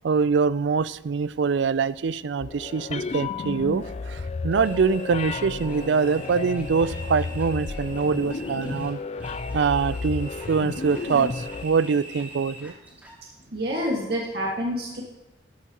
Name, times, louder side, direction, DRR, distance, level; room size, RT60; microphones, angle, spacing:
voice 1, 0.0-9.0 9.2-12.7, right 5 dB, 80° right, 17 dB, 0.4 m, -24 dB
sound 1, 2.4-11.7, left 4 dB, 35° left, 0.4 m, -33 dB
sound 2, 4.5-13.2, right 1 dB, 10° right, 2.4 m, -44 dB
voice 2, 13.5-15.0, equal, 60° right, -3 dB, 1.8 m, -27 dB
13.0 x 12.0 x 2.9 m, 1.0 s
head